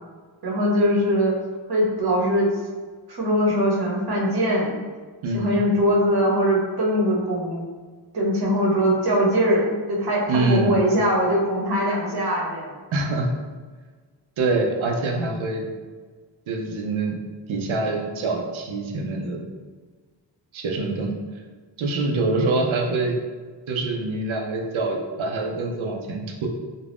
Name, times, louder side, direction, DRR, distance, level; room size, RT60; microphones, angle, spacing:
voice 1, 0.4-1.3 1.7-2.6 3.1-4.8 5.3-7.6 8.1-12.8, equal, 55° right, -3 dB, 0.8 m, -21 dB
voice 2, 5.2-5.6 10.3-10.8 12.9-13.3 14.4-15.7 16.5-17.2 17.5-19.4 20.5-21.1 21.8-23.2 23.7-26.5, right 2 dB, 90° right, 2 dB, 0.6 m, -25 dB
2.5 x 2.2 x 3.3 m, 1.4 s
wide cardioid pair, 90°, 46 cm